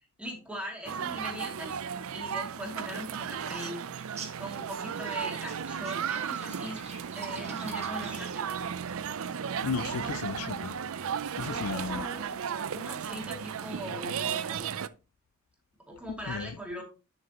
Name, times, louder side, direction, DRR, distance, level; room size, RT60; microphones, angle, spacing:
voice 1, 0.2-1.8 2.1-3.8 4.4-6.8 7.1-8.4 11.4-12.4 12.7-14.6 15.9-16.8, equal, 5° right, 2.7 m, -40 dB
sound 1, 0.9-14.9, right 7 dB, 65° right, 0.5 m, -35 dB
sound 2, 3.9-8.4, right 5 dB, 30° right, 1.5 m, -47 dB
voice 2, 9.6-10.8 11.4-12.1 16.1-16.5, left 5 dB, 75° left, 0.4 m, -34 dB
10.5 x 6.4 x 2.9 m
head